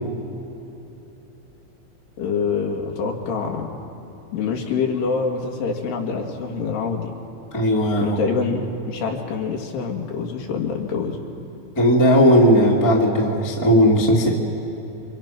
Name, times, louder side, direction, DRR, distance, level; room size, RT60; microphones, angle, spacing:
voice 1, 2.2-3.8 4.3-7.1 8.0-11.2, left 5 dB, 75° left, 1 dB, 4.1 m, -25 dB
voice 2, 7.5-8.2 11.8-14.3, equal, 5° left, -3 dB, 2.0 m, -16 dB
29.0 x 25.0 x 6.0 m, 2.9 s
omnidirectional pair, 4.9 m